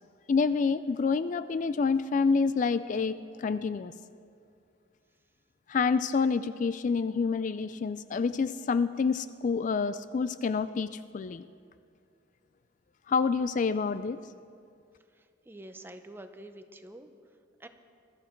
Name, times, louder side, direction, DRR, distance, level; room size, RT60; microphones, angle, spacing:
voice 1, 0.3-3.9 5.7-11.5 13.1-14.2, left 5 dB, 40° left, 13 dB, 0.3 m, -28 dB
voice 2, 15.2-17.1 17.6-17.7, right 1 dB, 10° right, 7 dB, 0.7 m, -47 dB
20.5 x 13.5 x 4.5 m, 2.3 s
head